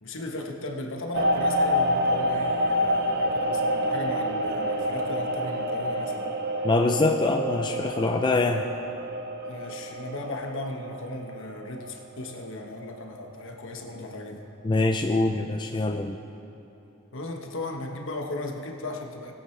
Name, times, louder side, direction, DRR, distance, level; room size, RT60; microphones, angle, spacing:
voice 1, 0.0-6.3 9.4-14.4 17.1-19.3, left 2 dB, 60° left, 2 dB, 1.2 m, -36 dB
sound 1, 1.1-12.5 12.8-13.2, equal, 50° right, 0.8 m, -28 dB
voice 2, 6.6-8.6 14.6-16.2, left 2 dB, 20° left, 2 dB, 0.4 m, -24 dB
20.0 x 8.8 x 3.3 m, 2.9 s
head